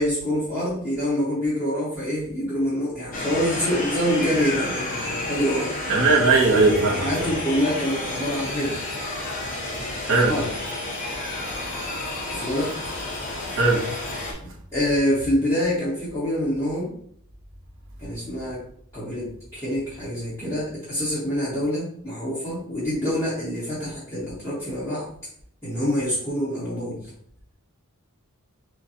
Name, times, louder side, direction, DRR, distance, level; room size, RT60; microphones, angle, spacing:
voice 1, 0.0-5.7 6.9-8.8 10.1-10.5 12.3-12.9 14.4-16.9 18.0-18.6 18.9-25.1 25.6-27.1, equal, 15° left, -11 dB, 1.3 m, -26 dB
sound 1, 3.1-14.3, left 2 dB, 40° left, 1.3 m, -31 dB
voice 2, 5.9-7.1 10.1-10.3 13.6-13.8, right 3 dB, 60° right, -1 dB, 0.9 m, -18 dB
6.4 x 2.3 x 2.8 m, 0.63 s
head